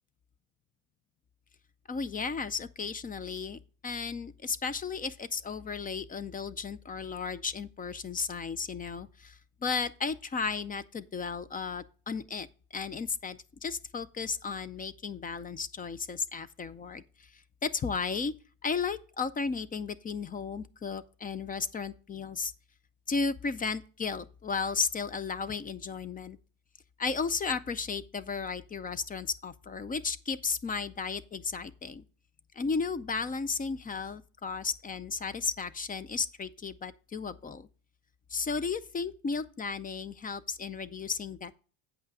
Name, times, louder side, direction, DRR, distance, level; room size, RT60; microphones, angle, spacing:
voice 1, 1.9-18.3 18.6-22.5 23.1-26.4 27.0-32.0 32.5-37.7 38.3-41.5, left 5 dB, 20° left, 0.4 m, -34 dB
8.5 x 5.6 x 4.8 m
supercardioid pair, 105°, 46 cm